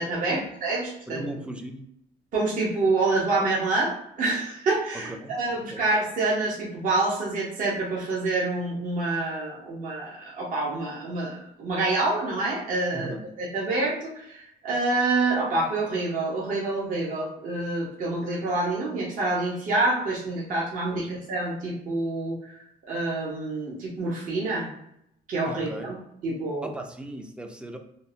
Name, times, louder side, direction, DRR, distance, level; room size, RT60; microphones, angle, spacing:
voice 1, 0.0-1.2 2.3-22.6 22.9-24.7 25.3-26.0 26.2-26.7, right 2 dB, 50° right, -5 dB, 0.8 m, -27 dB
voice 2, 1.1-1.8 5.1-5.4 5.7-5.8 12.9-13.2 20.9-21.1 25.4-25.9 26.6-27.8, right 1 dB, 5° right, 4 dB, 0.3 m, -37 dB
2.6 x 2.0 x 2.6 m, 0.75 s
cardioid pair, 110°, 17 cm